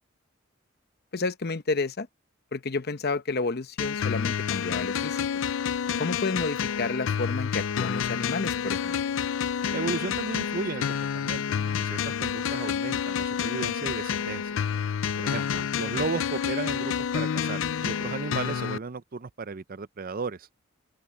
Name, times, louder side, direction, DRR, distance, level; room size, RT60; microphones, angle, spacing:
voice 1, 1.1-2.1 2.5-5.2 6.0-9.0, left 3 dB, 50° left, 0.9 m, -30 dB
sound 1, 3.8-18.8, left 7 dB, 70° left, 0.4 m, -29 dB
voice 2, 9.7-11.4 11.8-14.6 15.2-20.5, right 4 dB, 45° right, 0.6 m, -34 dB
open air
head